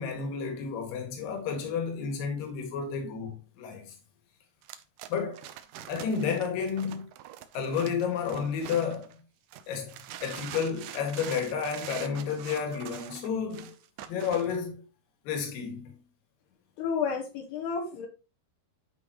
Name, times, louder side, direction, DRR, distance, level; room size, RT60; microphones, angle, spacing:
voice 1, 0.0-4.0 5.1-5.5 5.9-7.1 7.5-9.2 9.7-13.8 14.1-14.8 15.3-16.0, left 6 dB, 65° left, 3.4 m, -31 dB
sound 1, 4.6-9.1 9.5-14.6, right 12 dB, 80° right, 2.0 m, -44 dB
voice 2, 16.8-18.1, left 6 dB, 80° left, 3.2 m, -31 dB
10.5 x 5.9 x 3.0 m
omnidirectional pair, 4.6 m